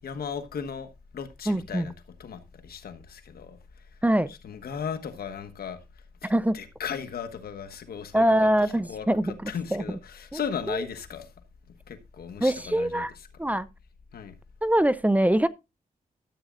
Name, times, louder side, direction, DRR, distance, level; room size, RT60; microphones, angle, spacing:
voice 1, 0.0-1.9 2.2-3.6 4.4-5.8 6.2-8.2 8.9-11.3 11.9-13.1 14.1-14.3, left 7 dB, 85° left, 1.3 m, -36 dB
voice 2, 1.5-1.9 4.0-4.3 6.2-6.6 8.1-10.0 10.3-10.4 10.7-10.8 12.4-13.1 13.4-13.7 14.6-15.5, right 1 dB, 10° right, 0.5 m, -23 dB
13.5 x 8.6 x 2.5 m
cardioid pair, 80°, 15 cm